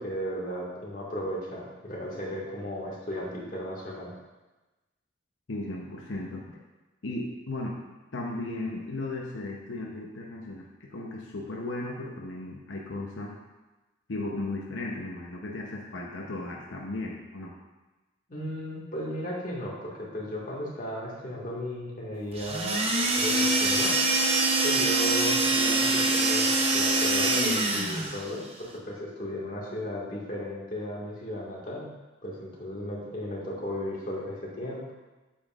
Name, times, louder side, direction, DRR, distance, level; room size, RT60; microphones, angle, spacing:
voice 1, 0.0-4.1 18.3-22.8 23.2-24.0 24.6-31.9 32.2-34.9, left 1 dB, 45° left, -5 dB, 1.8 m, -35 dB
voice 2, 5.5-6.6 7.0-7.8 8.1-13.4 14.1-17.5, left 2 dB, 85° left, -2 dB, 0.8 m, -36 dB
sound 1, 22.3-28.2, right 2 dB, 30° right, 0.7 m, -24 dB
8.4 x 7.2 x 2.5 m, 1.1 s
head